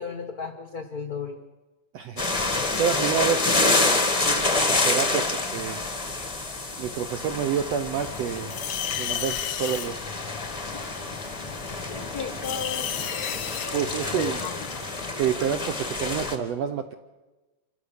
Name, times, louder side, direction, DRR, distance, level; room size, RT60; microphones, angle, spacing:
voice 1, 0.0-1.4 10.7-11.1 11.9-12.9 14.1-14.3, left 5 dB, 90° left, 6 dB, 0.8 m, -35 dB
voice 2, 1.9-2.3 2.8-5.8 6.8-8.5 9.0-10.0 13.7-14.4 15.2-16.9, right 8 dB, 90° right, 8 dB, 1.4 m, -28 dB
sound 1, 2.2-16.3, left 3 dB, 35° left, 0.5 m, -28 dB
sound 2, 7.9-15.1, left 9 dB, 65° left, 1.6 m, -34 dB
27.0 x 16.5 x 6.6 m, 1.2 s
omnidirectional pair, 4.1 m